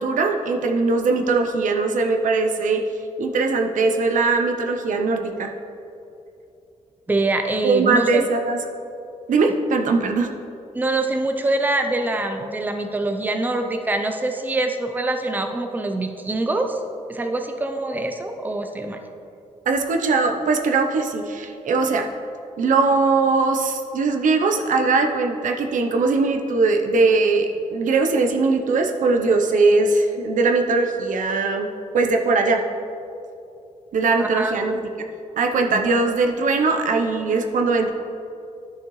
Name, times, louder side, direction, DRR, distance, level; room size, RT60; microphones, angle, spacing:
voice 1, 0.0-2.8 3.2-5.5 7.6-8.6 9.3-10.3 19.7-22.1 22.6-31.7 31.9-32.6 33.9-34.9 35.4-37.9, right 3 dB, 80° right, 4 dB, 0.6 m, -20 dB
voice 2, 7.1-8.3 10.7-16.8 17.1-19.0 34.2-34.6 35.7-35.8, right 2 dB, 15° right, 5 dB, 0.5 m, -24 dB
10.5 x 6.5 x 3.1 m, 2.6 s
wide cardioid pair, 120°, 13 cm